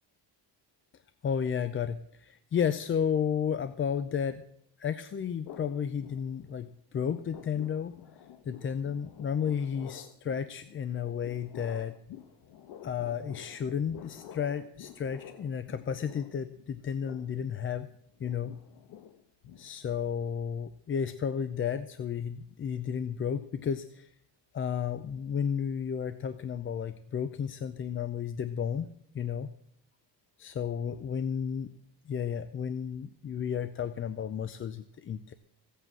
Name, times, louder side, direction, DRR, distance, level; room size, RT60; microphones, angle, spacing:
voice 1, 1.2-4.4 4.8-7.9 8.4-11.9 12.8-17.9 18.2-18.5 19.6-24.1 24.5-29.5 30.4-31.7 32.1-35.3, left 7 dB, 30° left, 12 dB, 0.5 m, -32 dB
sound 1, 5.4-6.7 7.0-20.1, left 10 dB, 65° left, 1.2 m, -50 dB
16.0 x 8.3 x 7.4 m, 0.68 s
cardioid pair, 150°, 43 cm